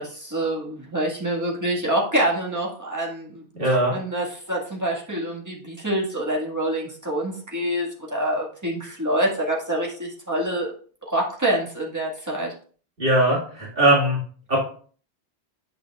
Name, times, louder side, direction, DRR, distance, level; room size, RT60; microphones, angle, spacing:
voice 1, 0.0-10.7 11.1-12.5, right 1 dB, 15° right, -3 dB, 1.7 m, -26 dB
voice 2, 3.6-3.9 13.0-14.2 14.5-14.6, right 1 dB, 60° right, -4 dB, 2.2 m, -19 dB
8.7 x 6.1 x 2.4 m, 0.43 s
omnidirectional pair, 1.1 m